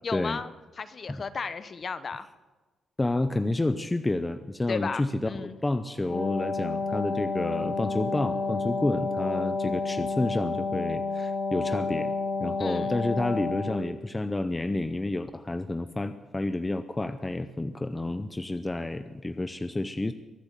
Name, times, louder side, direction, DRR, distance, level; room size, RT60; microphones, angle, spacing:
voice 1, 0.0-0.5 0.8-2.3 4.7-5.6 12.6-12.9, left 5 dB, 35° left, 13 dB, 0.9 m, -34 dB
voice 2, 3.0-12.1 12.4-20.1, left 2 dB, 15° left, 10 dB, 0.6 m, -30 dB
Wind instrument woodwind instrument, 5.9-13.9, left 3 dB, 70° left, 5.7 m, -30 dB
23.0 x 8.2 x 7.4 m, 1.2 s
cardioid pair, 140°, 0 cm